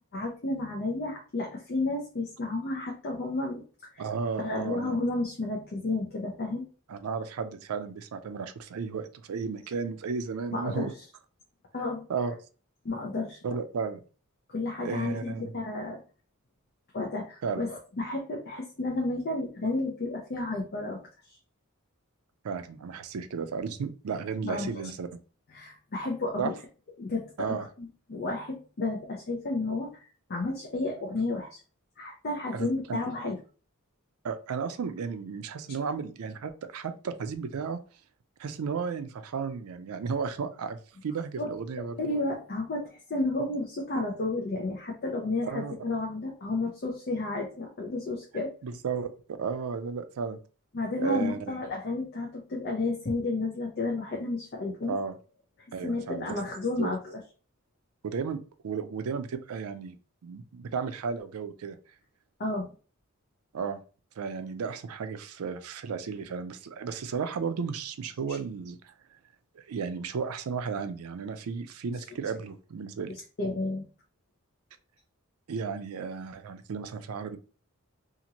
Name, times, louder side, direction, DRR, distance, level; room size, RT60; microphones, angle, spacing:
voice 1, 0.1-4.1 4.4-6.7 10.5-11.0 11.7-12.4 12.8-13.6 14.5-16.0 16.9-21.0 21.3-21.4 24.4-24.9 25.5-26.6 27.0-31.6 32.0-33.4 35.7-35.8 41.4-41.6 42.0-48.5 50.7-55.0 55.8-57.2 62.4-62.7 68.3-68.4 71.9-72.3 73.1-73.8, left 2 dB, 45° left, 0 dB, 0.5 m, -32 dB
voice 2, 4.0-5.0 6.9-10.9 12.1-12.4 13.4-14.0 14.8-15.5 17.4-17.6 22.4-25.1 26.4-26.5 27.4-27.7 32.5-33.0 34.2-37.8 38.4-42.0 45.4-45.7 48.6-49.1 49.4-50.4 51.0-51.4 54.9-55.1 55.7-56.3 56.8-56.9 58.0-58.4 58.6-60.0 60.2-61.8 63.5-63.8 64.2-68.9 69.6-73.1 75.5-77.4, right 5 dB, 85° right, 9 dB, 0.4 m, -34 dB
2.8 x 2.5 x 2.8 m, 0.37 s
head